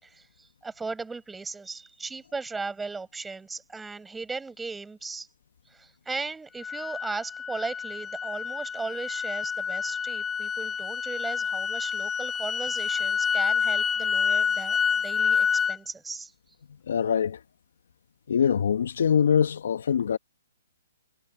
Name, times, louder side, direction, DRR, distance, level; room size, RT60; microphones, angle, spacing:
voice 1, 0.0-5.3 5.7-16.3, right 4 dB, 5° right, 6.8 m, -37 dB
sound 1, 6.6-15.8, left 6 dB, 15° left, 2.9 m, -28 dB
voice 2, 16.9-17.4 18.3-20.2, left 7 dB, 70° left, 1.3 m, -23 dB
hypercardioid pair, 135°, 0 cm